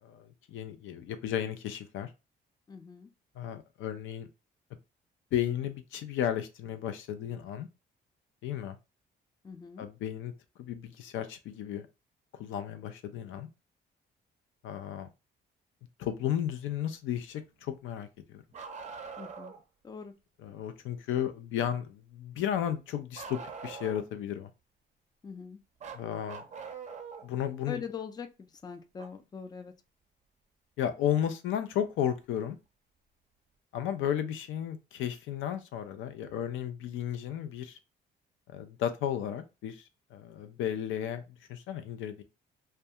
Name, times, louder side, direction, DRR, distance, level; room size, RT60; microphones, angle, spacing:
voice 1, 0.0-2.1 3.4-4.3 5.3-7.7 8.4-8.8 9.8-10.3 10.6-11.9 12.4-13.5 14.6-15.1 16.0-18.4 20.4-24.5 25.9-26.4 27.2-27.8 30.8-32.6 33.7-37.8 38.5-39.8 40.1-41.2 41.5-42.2, left 10 dB, 80° left, 0.4 m, -34 dB
voice 2, 2.7-3.1 9.4-9.9 19.2-19.5 19.8-20.1 25.2-25.6 27.7-29.7, left 6 dB, 20° left, 0.4 m, -42 dB
Bark, 18.5-19.6 23.2-24.2 25.8-27.3 29.0-29.1 31.0-31.1 32.2-32.3, right 5 dB, 35° right, 0.5 m, -43 dB
2.2 x 2.2 x 2.7 m
cardioid pair, 90°, 20 cm